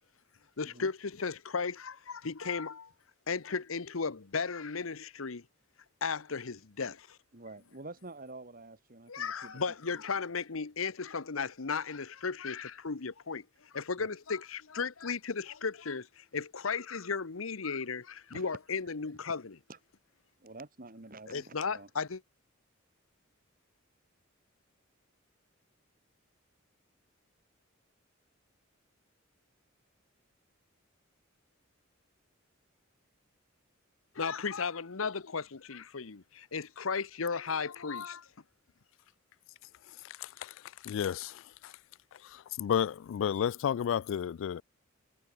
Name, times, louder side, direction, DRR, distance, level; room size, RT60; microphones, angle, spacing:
voice 1, 0.6-2.9 3.3-5.4 6.0-7.2 9.1-19.6 21.3-22.2 34.1-38.3, left 5 dB, 85° left, 1.0 m, -35 dB
voice 2, 7.3-9.6 14.0-14.1 18.3-18.5 19.7-19.8 20.4-21.9, right 2 dB, 45° right, 2.7 m, -48 dB
voice 3, 40.8-41.3 42.6-44.6, left 8 dB, 65° left, 0.3 m, -30 dB
head